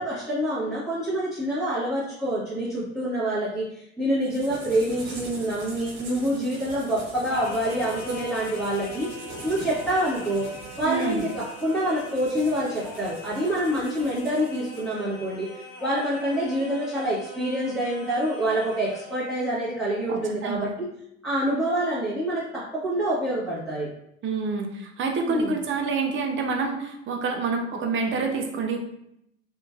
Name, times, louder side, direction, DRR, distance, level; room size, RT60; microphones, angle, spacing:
voice 1, 0.0-9.1 9.4-10.5 10.8-20.9 21.2-23.9 25.2-25.6, right 1 dB, ahead, -11 dB, 1.1 m, -26 dB
sound 1, 4.2-14.9, right 1 dB, 75° right, 1.1 m, -43 dB
Singing, 7.3-19.4, equal, 65° left, 1.0 m, -42 dB
voice 2, 10.8-11.3 20.1-20.7 24.2-28.8, right 4 dB, 35° right, 3 dB, 0.6 m, -27 dB
2.9 x 2.5 x 2.3 m, 0.78 s
hypercardioid pair, 75°, 35 cm